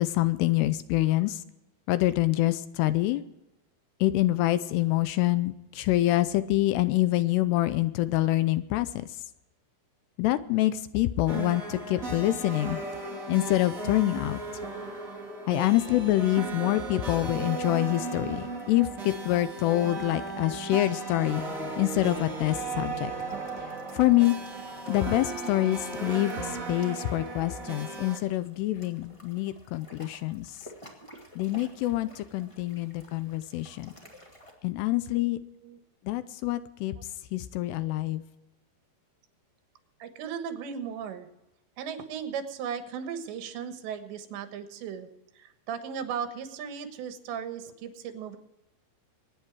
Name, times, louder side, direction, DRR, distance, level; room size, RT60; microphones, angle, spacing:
voice 1, 0.0-1.4 1.9-3.2 4.0-9.1 10.2-12.8 13.3-14.4 15.5-21.4 21.8-23.1 23.9-24.4 24.9-30.6 31.4-33.9 34.6-35.4 36.1-36.9 37.3-38.2, left 16 dB, 80° left, 13 dB, 2.6 m, -26 dB
sound 1, 11.3-28.2, right 3 dB, 30° right, 1.6 m, -36 dB
sound 2, 22.1-34.5, equal, 20° left, 0.9 m, -54 dB
voice 2, 35.4-35.8 40.0-41.3 41.8-45.1 45.4-48.4, right 7 dB, 85° right, 7 dB, 3.6 m, -37 dB
24.0 x 10.0 x 4.7 m, 0.92 s
omnidirectional pair, 5.0 m